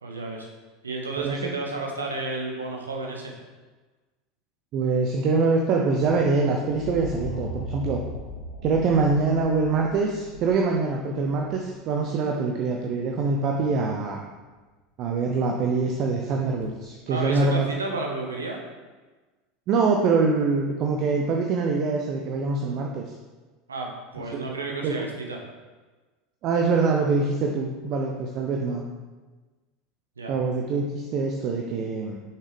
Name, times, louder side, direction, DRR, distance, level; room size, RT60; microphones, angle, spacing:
voice 1, 0.0-0.5 0.8-3.3 17.1-18.6 23.7-25.4 30.2-30.4, right 3 dB, 80° right, 0 dB, 1.0 m, -32 dB
voice 2, 4.7-8.0 8.6-14.2 15.0-17.7 19.7-23.0 24.3-24.5 24.8-25.0 26.4-28.8 30.3-32.2, right 4 dB, 45° right, 1 dB, 0.6 m, -24 dB
sound 1, 6.0-11.9 13.5-14.0 16.6-16.7, left 1 dB, 80° left, 1.1 m, -38 dB
6.3 x 5.8 x 3.3 m, 1.3 s
figure-of-eight pair, 75°, 0 cm